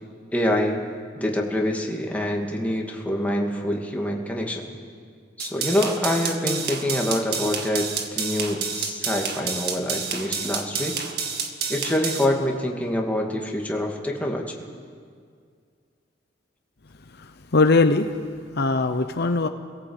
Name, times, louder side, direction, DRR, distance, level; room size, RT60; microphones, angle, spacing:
voice 1, 0.3-0.8 1.2-4.6 5.4-10.9 11.7-14.5, left 1 dB, 10° left, 0 dB, 2.4 m, -26 dB
sound 1, 5.4-12.2, right 6 dB, 60° right, 2.0 m, -29 dB
voice 2, 17.2-18.1 18.5-19.5, left 3 dB, 60° left, 8 dB, 0.9 m, -20 dB
26.0 x 17.0 x 8.2 m, 2.1 s
head